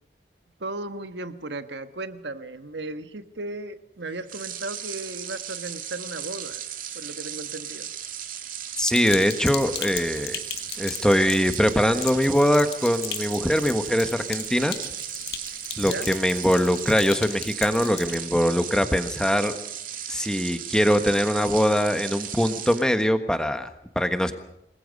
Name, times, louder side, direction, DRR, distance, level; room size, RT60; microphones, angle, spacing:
voice 1, 0.6-6.6 6.9-7.9 15.9-16.1, right 2 dB, 85° right, 10 dB, 1.5 m, -35 dB
sound 1, 4.2-22.9, right 9 dB, 50° right, 2.4 m, -36 dB
Sink (filling or washing), 8.8-18.1, left 11 dB, 70° left, 2.1 m, -37 dB
voice 2, 8.8-10.4 10.8-14.8 15.8-19.5 20.1-24.3, equal, 5° left, 8 dB, 1.4 m, -22 dB
27.5 x 21.0 x 5.4 m, 0.81 s
head